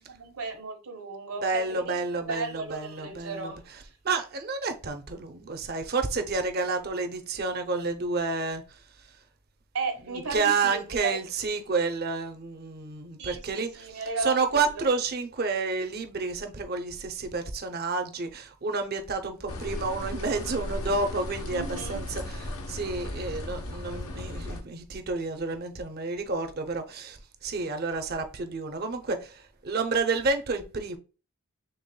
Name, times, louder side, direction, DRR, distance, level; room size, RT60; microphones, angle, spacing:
voice 1, 0.1-3.9 9.7-11.2 13.2-14.9 21.5-22.1, right 3 dB, 80° right, 1.3 m, -35 dB
voice 2, 1.4-3.5 4.0-8.8 10.1-31.0, right 4 dB, 45° right, 0.7 m, -30 dB
sound 1, 19.5-24.6, left 1 dB, 75° left, 0.9 m, -36 dB
5.4 x 3.5 x 2.2 m
head